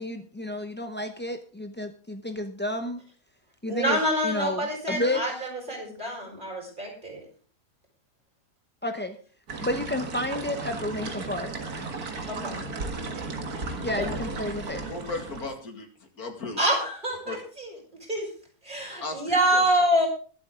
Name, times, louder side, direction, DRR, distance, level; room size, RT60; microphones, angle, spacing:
voice 1, 0.0-3.0 3.6-4.0 4.2-5.2 8.8-9.2 9.6-11.5 13.8-14.8, left 1 dB, 15° left, 6 dB, 0.4 m, -31 dB
voice 2, 3.6-7.2 12.2-12.6 13.9-14.1 16.6-17.7 18.1-18.3 18.6-20.1, equal, 30° right, -1 dB, 5.2 m, -26 dB
sound 1, 9.5-15.5, right 3 dB, 85° right, 2.3 m, -35 dB
voice 3, 14.8-15.9 16.2-16.6 17.3-17.4 19.0-19.6, left 3 dB, 85° left, 4 dB, 2.7 m, -35 dB
21.5 x 8.0 x 3.7 m, 0.41 s
omnidirectional pair, 1.6 m